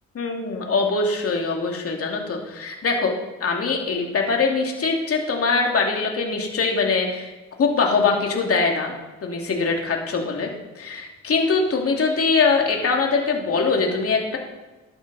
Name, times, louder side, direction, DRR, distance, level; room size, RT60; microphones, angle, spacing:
voice 1, 0.1-3.1 3.4-7.3 7.6-8.9 9.2-10.5 10.8-14.4, left 4 dB, 50° left, 1 dB, 2.7 m, -22 dB
12.5 x 11.5 x 4.2 m, 1.1 s
cardioid pair, 90°, 30 cm